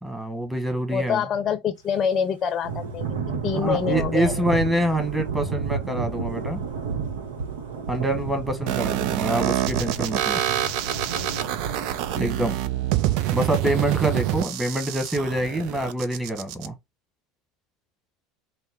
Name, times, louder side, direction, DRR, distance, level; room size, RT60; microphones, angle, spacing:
voice 1, 0.0-1.2 3.6-6.6 7.9-10.4 12.2-12.5 13.3-16.7, right 1 dB, 10° right, 1.4 m, -26 dB
voice 2, 0.9-3.2 3.4-4.5, left 7 dB, 40° left, 0.6 m, -26 dB
Thunder / Rain, 2.6-13.2, right 5 dB, 80° right, 0.9 m, -31 dB
sound 1, 8.7-16.7, right 12 dB, 60° right, 0.4 m, -26 dB
4.2 x 2.1 x 3.7 m
hypercardioid pair, 80°, 0 cm